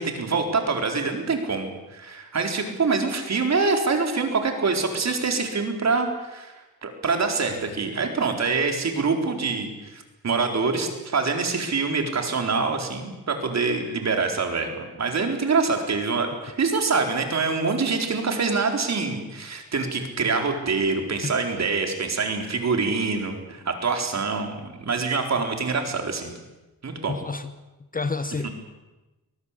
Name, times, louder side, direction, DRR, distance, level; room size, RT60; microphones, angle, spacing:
voice 1, 0.0-26.3 26.8-27.1, right 4 dB, 45° right, 4 dB, 4.3 m, -25 dB
voice 2, 27.1-27.5 27.9-28.5, left 4 dB, 20° left, 11 dB, 1.0 m, -29 dB
24.0 x 19.0 x 8.5 m, 1.1 s
cardioid pair, 125°, 37 cm